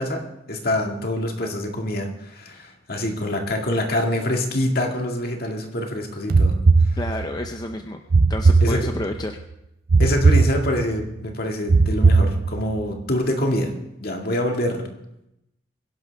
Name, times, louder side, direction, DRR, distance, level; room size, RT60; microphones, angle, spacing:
voice 1, 0.0-6.6 8.6-8.9 10.0-13.7 14.0-14.9, left 1 dB, 55° left, 2 dB, 2.1 m, -25 dB
sound 1, 6.3-7.5 8.1-9.3 9.9-11.1 11.7-12.8, right 4 dB, 50° right, 0.5 m, -18 dB
voice 2, 7.0-8.0 8.3-9.4, left 1 dB, 20° left, 4 dB, 0.7 m, -30 dB
22.5 x 11.0 x 3.5 m, 0.84 s
head